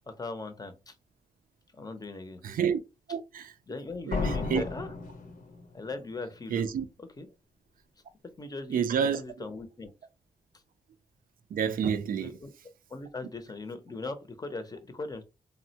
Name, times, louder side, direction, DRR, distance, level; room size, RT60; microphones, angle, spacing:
voice 1, 0.1-1.0 1.7-2.4 3.7-4.9 5.7-6.7 7.0-7.3 8.4-8.9 9.1-9.9 12.2-12.5 12.9-15.2, left 3 dB, 25° left, 0.5 m, -39 dB
voice 2, 2.4-2.8 3.1-3.5 4.1-4.6 6.5-6.9 8.7-9.2 11.5-12.4, right 7 dB, 80° right, 0.4 m, -29 dB
sound 1, 4.1-5.9, left 3 dB, 70° left, 0.6 m, -33 dB
3.4 x 2.1 x 2.7 m
cardioid pair, 95°, 14 cm